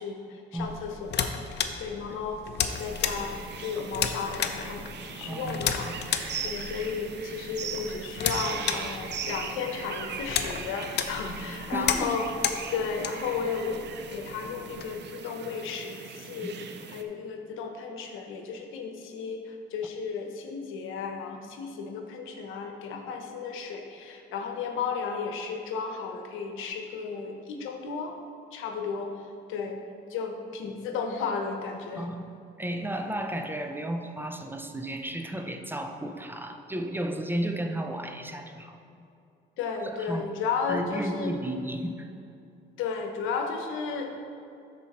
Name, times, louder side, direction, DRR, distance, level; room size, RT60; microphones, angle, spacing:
voice 1, 0.0-2.4 2.8-3.3 3.6-12.3 12.7-13.8 14.1-28.2 28.5-29.8 30.1-32.1 39.6-41.3 42.8-44.2, left 5 dB, 90° left, 3 dB, 0.9 m, -34 dB
sound 1, 0.6-14.8, left 7 dB, 60° left, 0.6 m, -34 dB
sound 2, 2.7-17.0, right 6 dB, 60° right, 0.6 m, -40 dB
voice 2, 5.2-5.9 11.7-12.2 16.4-16.5 31.9-32.3 32.6-38.8 40.0-40.3 40.7-42.1, right 1 dB, 10° right, 5 dB, 0.6 m, -33 dB
12.5 x 4.4 x 4.2 m, 2.6 s
cardioid pair, 90°, 20 cm